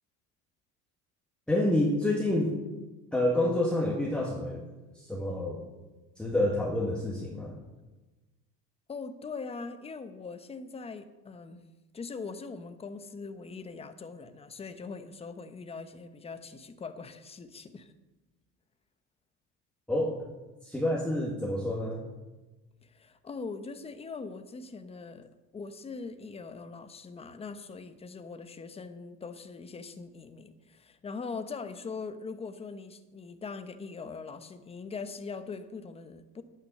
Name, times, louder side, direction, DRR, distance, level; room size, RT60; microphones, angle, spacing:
voice 1, 1.5-2.5 3.1-4.6 5.0-5.6 6.2-7.5 19.9-20.1 20.6-22.0, left 1 dB, 5° left, -4 dB, 1.8 m, -28 dB
voice 2, 8.9-11.6 11.9-17.9 22.8-36.4, left 4 dB, 20° left, 10 dB, 0.9 m, -41 dB
10.5 x 9.2 x 6.7 m, 1.1 s
cardioid pair, 130°, 31 cm